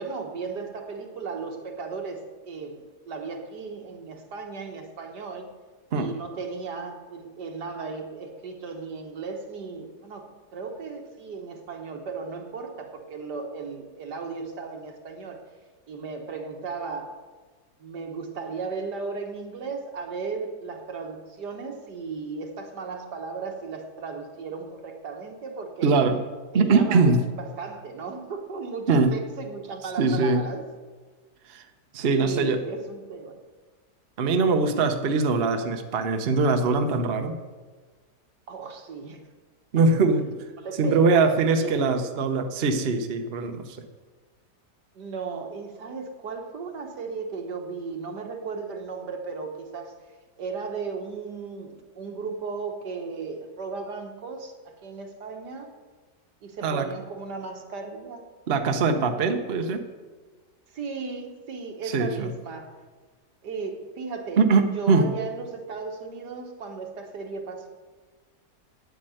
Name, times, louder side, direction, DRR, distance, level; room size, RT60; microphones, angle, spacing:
voice 1, 0.0-5.5 5.9-15.4 15.9-17.2 17.8-26.0 26.5-27.1 27.4-30.6 32.0-33.4 34.5-34.9 38.5-39.2 40.6-41.3 41.6-41.9 45.0-49.9 50.4-55.7 56.4-58.2 60.7-62.7 63.4-64.4 64.7-67.7, right 4 dB, 75° right, 4 dB, 1.9 m, -35 dB
voice 2, 25.8-26.2 26.5-27.2 28.9-29.1 30.0-30.4 31.5-31.6 31.9-32.6 34.2-37.4 39.7-40.3 40.8-43.6 56.6-56.9 58.5-59.8 61.9-62.3 64.4-65.1, right 4 dB, 45° right, 6 dB, 0.9 m, -22 dB
9.0 x 8.7 x 7.7 m, 1.4 s
omnidirectional pair, 1.8 m